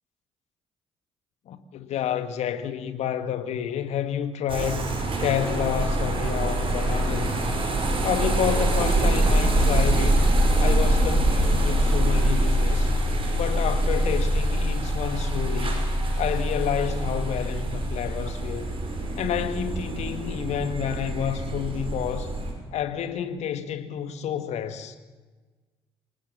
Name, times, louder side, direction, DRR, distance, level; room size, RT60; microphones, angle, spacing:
voice 1, 1.5-4.9 5.2-7.5 8.0-10.2 10.6-12.9 13.4-15.9 16.2-18.8 19.2-22.4 22.7-25.0, left 9 dB, 60° left, 1.8 m, -29 dB
sound 1, 4.5-22.5, right 1 dB, 45° right, 6.2 m, -24 dB
26.0 x 19.0 x 7.3 m
figure-of-eight pair, 45°, 13 cm